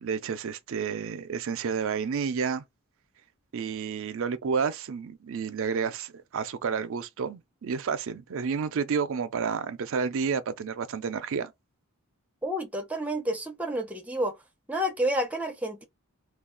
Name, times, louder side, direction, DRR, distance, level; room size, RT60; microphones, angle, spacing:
voice 1, 0.0-2.6 3.5-11.5, right 6 dB, 60° right, 0.4 m, -30 dB
voice 2, 12.4-14.4 14.7-15.8, equal, 5° right, 0.6 m, -29 dB
2.3 x 2.3 x 3.7 m
head